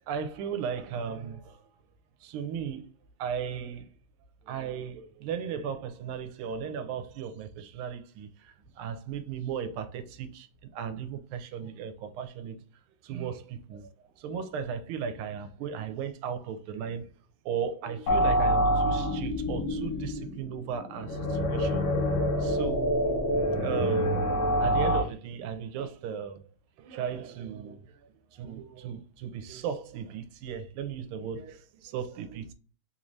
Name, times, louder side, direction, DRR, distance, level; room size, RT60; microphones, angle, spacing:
voice 1, 0.1-1.6 2.2-2.9 3.2-3.9 4.4-12.6 13.0-13.9 14.2-17.1 17.4-21.9 22.4-22.9 23.6-24.3 24.6-26.4 26.8-32.5, right 7 dB, 80° right, 1.4 m, -36 dB
sound 1, 18.1-25.0, equal, 55° left, 1.1 m, -26 dB
3.7 x 3.0 x 2.6 m
omnidirectional pair, 2.4 m